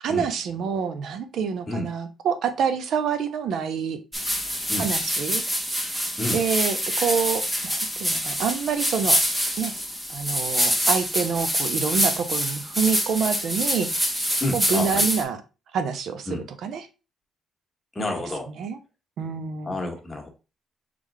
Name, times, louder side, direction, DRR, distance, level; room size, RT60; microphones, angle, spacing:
voice 1, 0.0-4.0 4.8-5.4 6.3-9.2 9.6-9.7 10.1-14.1 14.5-15.4 15.7-16.9 18.5-18.8 19.2-19.7, right 6 dB, 70° right, 10 dB, 0.6 m, -27 dB
sound 1, 4.1-15.2, equal, 15° right, 1.0 m, -25 dB
voice 2, 14.4-15.1 16.3-16.4 17.9-18.5 19.6-20.3, left 2 dB, 20° left, 1 dB, 1.3 m, -29 dB
3.7 x 3.4 x 3.3 m, 0.30 s
cardioid pair, 90°, 0 cm